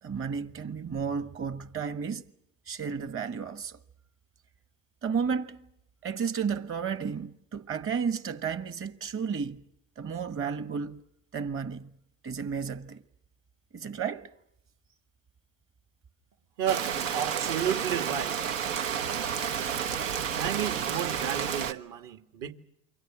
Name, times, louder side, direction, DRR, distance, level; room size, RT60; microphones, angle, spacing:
voice 1, 0.0-2.3 2.7-3.8 5.0-5.7 6.0-9.6 10.0-11.0 11.3-12.0 12.2-13.0 13.7-14.3, right 6 dB, 35° right, 1.5 m, -32 dB
voice 2, 16.6-18.5 20.1-22.5, right 9 dB, 60° right, 2.1 m, -32 dB
Rain, 16.7-21.7, right 8 dB, 85° right, 1.3 m, -31 dB
28.5 x 24.0 x 6.2 m
supercardioid pair, 95°, 38 cm